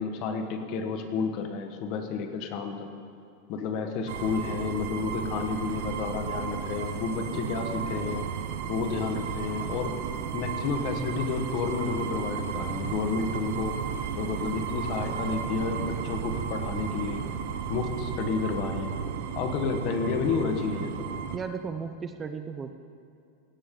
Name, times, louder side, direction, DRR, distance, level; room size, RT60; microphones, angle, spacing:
voice 1, 0.0-2.9 3.5-8.2 8.7-10.0 10.3-13.7 14.1-17.2 17.7-18.9 19.3-21.1, left 5 dB, 40° left, 6 dB, 1.4 m, -31 dB
sound 1, 4.1-21.4, right 7 dB, 60° right, 1.0 m, -33 dB
voice 2, 21.3-22.7, right 6 dB, 15° right, 8 dB, 0.6 m, -35 dB
17.0 x 16.5 x 3.9 m, 2.4 s
supercardioid pair, 160°, 0 cm